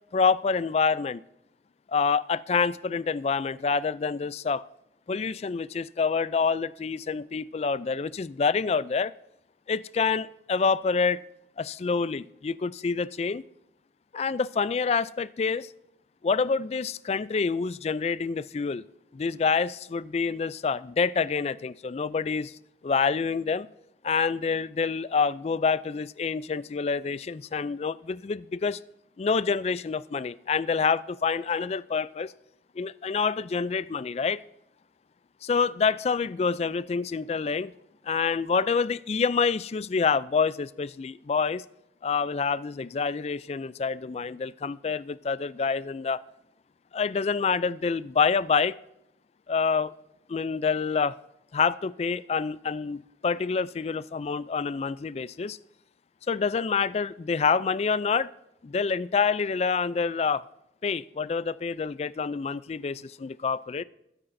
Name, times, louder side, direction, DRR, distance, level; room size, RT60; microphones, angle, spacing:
voice 1, 0.1-1.2 1.9-4.6 5.1-9.1 9.7-11.2 11.6-13.4 14.1-15.7 16.2-18.8 19.1-22.5 22.8-23.7 24.0-28.8 29.2-32.3 32.8-34.4 35.4-37.7 38.1-41.6 42.0-46.2 46.9-48.7 49.5-49.9 50.3-51.1 51.5-55.6 56.3-58.3 58.6-60.4 60.8-63.8, left 5 dB, 35° left, 0.3 m, -27 dB
20.5 x 9.8 x 2.6 m
head